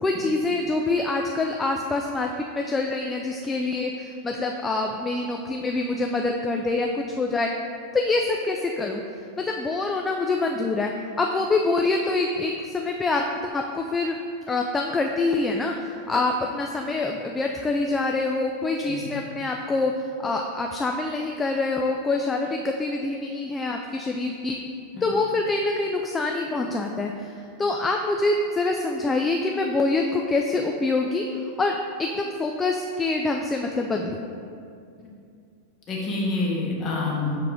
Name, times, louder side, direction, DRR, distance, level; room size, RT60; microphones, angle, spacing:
voice 1, 0.0-7.5 7.9-9.0 9.4-10.9 11.2-14.1 14.5-19.9 20.2-24.6 25.0-27.3 27.6-31.2 31.6-34.3, left 3 dB, 15° left, 2 dB, 0.3 m, -25 dB
voice 2, 35.9-37.3, left 3 dB, 30° left, -3 dB, 1.3 m, -27 dB
6.2 x 4.6 x 3.5 m, 2.4 s
figure-of-eight pair, 90°, 0 cm